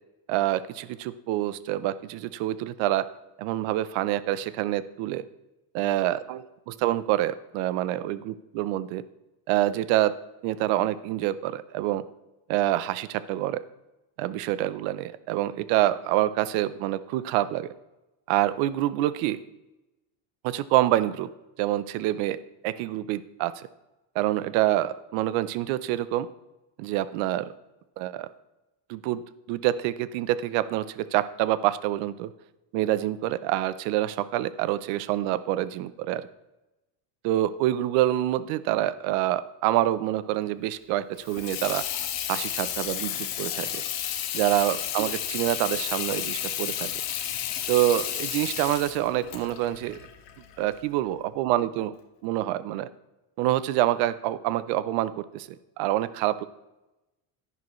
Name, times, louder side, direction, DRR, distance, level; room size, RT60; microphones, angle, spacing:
voice 1, 0.3-3.1 3.4-5.2 5.7-9.0 9.5-10.2 10.4-12.0 12.5-13.6 14.2-17.7 18.3-19.4 20.4-21.3 21.6-23.7 24.1-26.3 26.8-27.5 28.0-28.3 28.9-29.2 29.5-32.3 32.7-36.3 37.2-41.8 42.3-43.8 44.3-46.9 47.7-50.0 50.6-51.9 52.2-52.9 53.4-55.5 55.8-56.4, right 14 dB, 75° right, 15 dB, 0.7 m, -26 dB
Water tap faucet / Sink (filling or washing), 41.2-50.8, left 10 dB, 65° left, 1.4 m, -32 dB
11.0 x 10.5 x 3.1 m, 0.99 s
cardioid pair, 170°, 46 cm